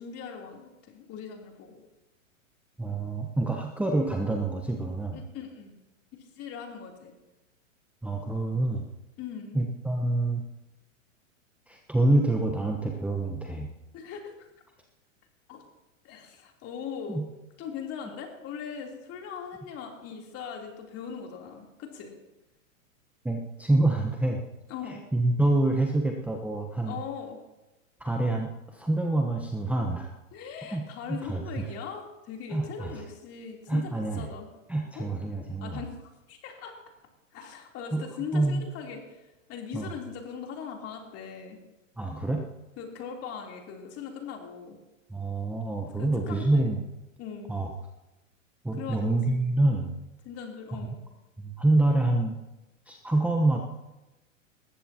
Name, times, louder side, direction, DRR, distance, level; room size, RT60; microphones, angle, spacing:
voice 1, 0.0-1.8 5.1-5.8 6.1-7.1 9.2-9.6 13.9-14.5 15.5-15.6 16.0-17.2 17.6-22.1 24.7-25.0 26.8-27.4 30.3-34.5 34.9-35.1 35.6-36.8 37.3-41.6 42.8-44.8 46.0-46.7 47.2-47.5 48.7-49.2 50.2-51.0, left 7 dB, 35° left, 1 dB, 3.3 m, -40 dB
voice 2, 2.8-5.2 8.0-8.8 9.5-10.4 11.7-13.7 17.1-17.3 23.2-24.4 25.1-27.0 28.0-30.1 30.7-31.4 32.5-32.9 33.7-34.3 34.7-35.8 37.9-38.0 38.3-38.6 39.7-39.9 42.0-42.4 45.1-46.8 47.5-47.7 48.6-49.9 51.4-52.4 52.9-53.6, right 2 dB, 5° right, 2 dB, 1.0 m, -26 dB
20.5 x 15.0 x 2.9 m, 1.0 s
hypercardioid pair, 115°, 40 cm